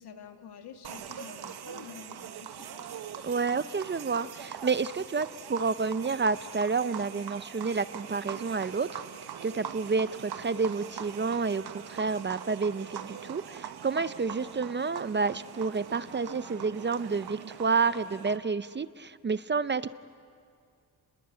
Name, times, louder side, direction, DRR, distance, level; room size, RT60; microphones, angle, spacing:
voice 1, 0.0-2.9, left 7 dB, 80° left, 5 dB, 2.1 m, -48 dB
sound 1, 0.8-18.4, right 8 dB, 75° right, 1.3 m, -42 dB
voice 2, 3.2-9.0 9.4-19.9, right 4 dB, 30° right, 14 dB, 0.6 m, -29 dB
29.5 x 21.0 x 8.9 m, 2.2 s
cardioid pair, 105°, 39 cm